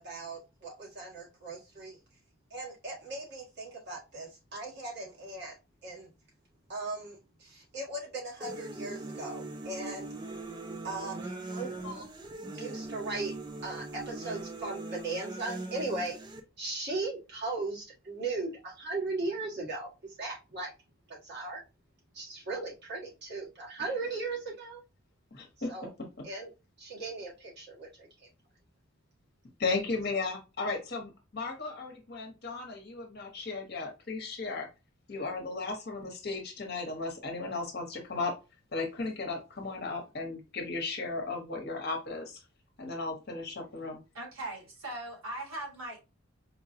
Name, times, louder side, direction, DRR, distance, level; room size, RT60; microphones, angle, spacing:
voice 1, 0.0-2.0 2.5-5.5 5.8-6.1 6.7-10.1 10.8-12.2 12.5-13.3 13.6-16.2 16.6-20.7 21.1-21.6 22.1-24.8 25.7-25.9 26.2-26.5 26.8-28.3, right 3 dB, 50° right, 1.5 m, -38 dB
sound 1, 8.4-16.4, right 2 dB, 20° right, 0.4 m, -41 dB
voice 2, 25.3-25.7 29.6-34.7 35.1-38.3 38.7-42.4 42.8-44.0, left 3 dB, 50° left, 1.0 m, -35 dB
voice 3, 44.1-46.0, right 1 dB, 75° right, 1.6 m, -39 dB
4.5 x 2.3 x 2.7 m
head